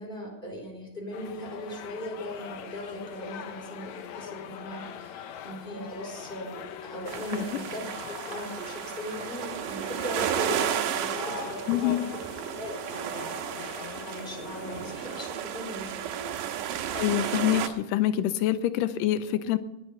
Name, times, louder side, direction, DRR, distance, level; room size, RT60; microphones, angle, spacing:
voice 1, 0.0-7.9 8.3-12.0 12.5-13.7 14.0-16.5, equal, 15° left, 1 dB, 4.7 m, -39 dB
sound 1, 1.1-15.3, left 8 dB, 70° left, 2.1 m, -42 dB
sound 2, 7.1-17.7, right 9 dB, 85° right, 2.6 m, -33 dB
voice 2, 11.7-12.0 16.9-19.6, left 12 dB, 90° left, 12 dB, 2.3 m, -26 dB
19.5 x 8.9 x 5.7 m, 0.98 s
omnidirectional pair, 3.8 m